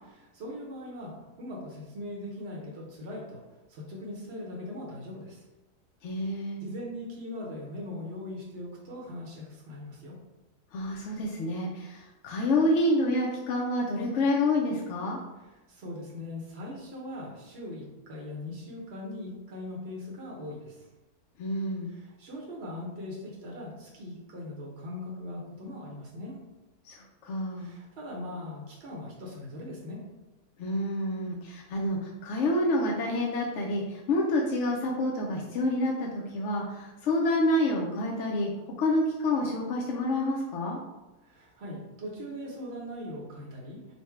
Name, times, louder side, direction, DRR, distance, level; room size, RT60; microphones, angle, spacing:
voice 1, 0.0-3.4 3.7-5.4 6.6-10.1 15.7-20.9 21.9-26.4 27.6-30.0 41.2-43.9, left 1 dB, 50° right, -4 dB, 1.0 m, -40 dB
voice 2, 6.0-6.6 10.7-15.2 21.4-21.9 26.8-27.7 30.6-38.5 38.8-40.8, left 1 dB, 65° left, -2 dB, 0.7 m, -28 dB
4.2 x 2.1 x 4.4 m, 1.1 s
omnidirectional pair, 1.6 m